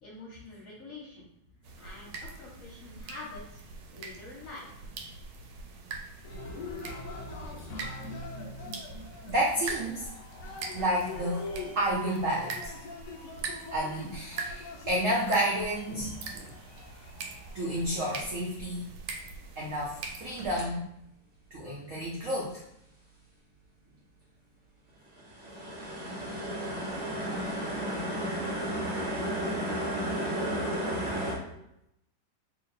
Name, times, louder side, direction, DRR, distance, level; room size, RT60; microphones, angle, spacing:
voice 1, 0.0-1.3 1.8-2.1 2.4-3.6 3.9-4.9, left 3 dB, 55° left, -4 dB, 1.0 m, -46 dB
sound 1, 1.6-20.6, right 4 dB, 90° right, 1.4 m, -43 dB
Cheering, 6.2-18.2, left 3 dB, 85° left, 0.7 m, -43 dB
voice 2, 9.3-10.1 10.7-11.4 11.8-12.6 13.7-16.5 17.5-18.9 19.6-20.8 21.5-22.6, right 1 dB, 75° right, -4 dB, 0.7 m, -30 dB
sound 2, 20.4-20.6 25.2-31.3, right 1 dB, 45° right, 1.0 m, -33 dB
2.9 x 2.9 x 3.9 m, 0.79 s
omnidirectional pair, 2.2 m